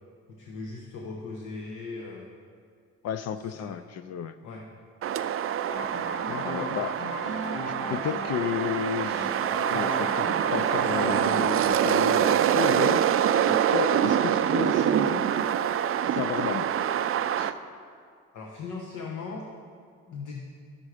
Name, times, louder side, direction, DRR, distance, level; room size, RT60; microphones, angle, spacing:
voice 1, 0.3-2.3 3.5-3.7 4.4-4.7 18.3-19.5 20.1-20.3, left 4 dB, 75° left, 0 dB, 1.1 m, -38 dB
voice 2, 3.0-4.4 6.3-7.0 7.7-13.1 13.5-15.3 16.1-16.7 17.4-17.6, left 9 dB, 60° left, 11 dB, 0.4 m, -32 dB
sound 1, 5.0-17.5, right 9 dB, 50° right, 0.4 m, -25 dB
sound 2, 5.7-11.7, left 1 dB, 40° left, 1.7 m, -36 dB
11.0 x 7.3 x 4.9 m, 2.2 s
cardioid pair, 90°, 30 cm